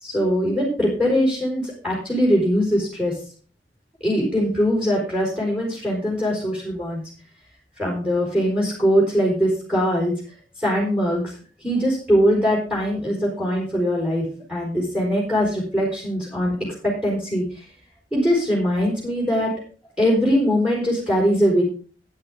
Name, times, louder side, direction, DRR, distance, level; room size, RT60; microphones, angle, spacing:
voice 1, 0.0-3.1 4.0-7.0 7.8-10.1 10.6-11.3 11.6-16.5 16.8-17.4 18.1-19.5 20.0-21.6, equal, 5° right, -3 dB, 4.7 m, -21 dB
12.0 x 10.0 x 3.7 m, 0.38 s
head